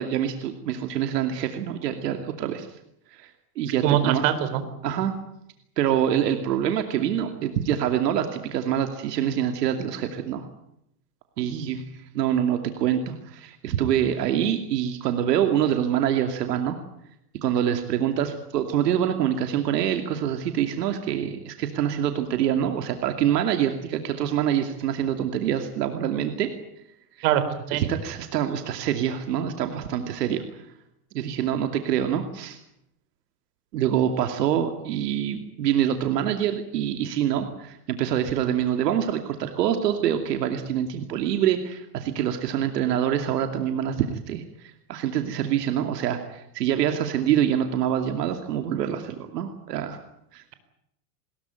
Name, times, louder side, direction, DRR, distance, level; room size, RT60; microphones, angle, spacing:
voice 1, 0.0-2.7 3.2-3.3 3.6-4.3 4.8-5.1 5.8-10.5 11.4-11.8 12.1-16.8 17.4-26.5 27.7-30.6 31.1-32.6 33.7-50.0 50.3-50.5, right 10 dB, 90° right, 6 dB, 2.7 m, -25 dB
voice 2, 3.8-4.6 27.2-27.9, right 11 dB, 60° right, 11 dB, 4.3 m, -23 dB
22.5 x 21.0 x 9.2 m, 0.78 s
supercardioid pair, 140°, 47 cm